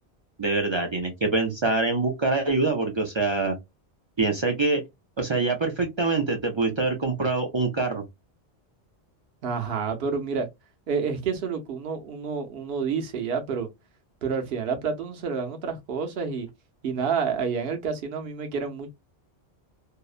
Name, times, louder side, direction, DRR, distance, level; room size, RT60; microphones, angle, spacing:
voice 1, 0.4-3.6 4.2-4.8 5.2-8.0, right 3 dB, 45° right, 0.3 m, -25 dB
voice 2, 9.4-10.5 10.9-13.7 14.2-16.5 16.8-18.9, right 5 dB, 65° right, 0.9 m, -29 dB
2.7 x 2.0 x 2.3 m
omnidirectional pair, 1.1 m